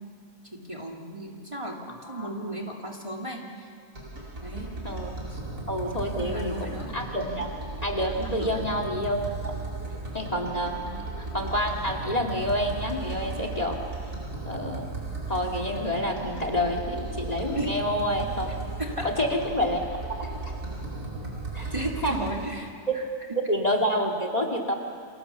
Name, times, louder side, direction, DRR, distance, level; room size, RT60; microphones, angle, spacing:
voice 1, 0.5-3.7 4.4-4.7 5.3-5.4 6.1-7.4 8.2-8.6 10.7-11.1 17.5-17.7 18.8-19.1 21.7-23.0 23.3-23.4, right 1 dB, 20° right, -1 dB, 2.5 m, -35 dB
voice 2, 1.9-2.5 4.8-5.1 5.7-7.5 7.8-9.5 10.1-10.8 11.2-13.8 14.5-14.8 15.3-18.5 19.0-20.3 21.5-21.7 22.0-22.2 22.9-23.0 23.5-24.7, equal, 25° left, 4 dB, 2.6 m, -28 dB
sound 1, 3.9-22.5, right 2 dB, 85° right, 5.6 m, -36 dB
29.5 x 27.5 x 7.0 m, 2.2 s
omnidirectional pair, 1.6 m